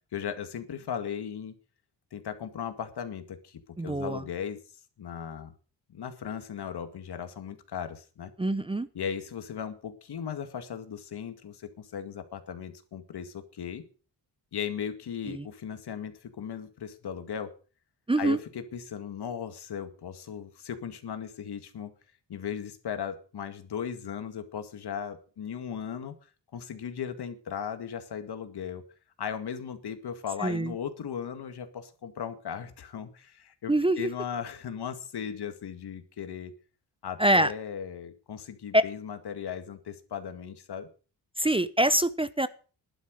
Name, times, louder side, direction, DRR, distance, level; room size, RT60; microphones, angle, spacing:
voice 1, 0.1-1.5 2.1-4.6 5.0-5.5 5.9-8.3 8.9-13.8 14.5-17.5 18.2-21.9 22.3-26.1 26.5-28.8 29.2-36.5 37.0-40.9, left 8 dB, 70° left, 9 dB, 2.1 m, -37 dB
voice 2, 3.8-4.2 8.4-8.9 15.3-15.5 18.1-18.4 30.4-30.7 33.7-34.1 37.2-37.5 38.7-38.8 41.4-42.5, right 1 dB, 15° right, 15 dB, 0.8 m, -24 dB
11.5 x 10.0 x 6.4 m, 0.38 s
cardioid pair, 75°, 41 cm